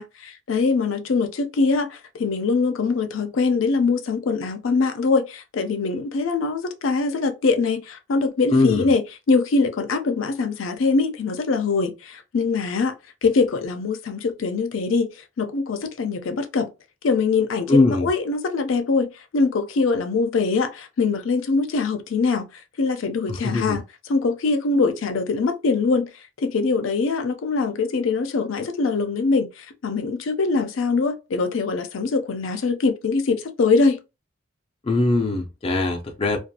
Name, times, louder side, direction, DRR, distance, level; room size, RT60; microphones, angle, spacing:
voice 1, 0.0-9.0 9.3-12.9 13.2-15.1 15.4-16.7 17.0-22.5 22.8-23.8 24.1-26.1 26.4-34.0, left 4 dB, 85° left, 0.5 m, -23 dB
voice 2, 8.5-8.9 17.7-18.1 23.3-23.8 34.8-36.4, left 2 dB, 30° left, 0.4 m, -21 dB
2.5 x 2.3 x 2.6 m
head